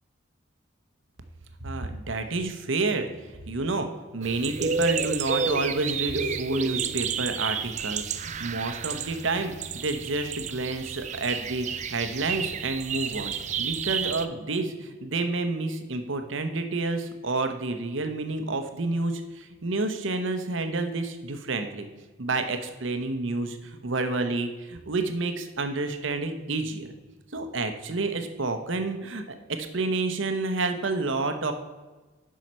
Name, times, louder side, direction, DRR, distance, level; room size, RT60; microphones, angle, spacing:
voice 1, 1.6-3.1 3.5-3.9 4.1-21.9 22.2-26.9 27.3-31.5, right 3 dB, 70° right, 7 dB, 0.9 m, -29 dB
sound 1, 4.2-14.2, right 6 dB, 35° right, 0.4 m, -31 dB
7.6 x 5.6 x 5.5 m, 1.2 s
head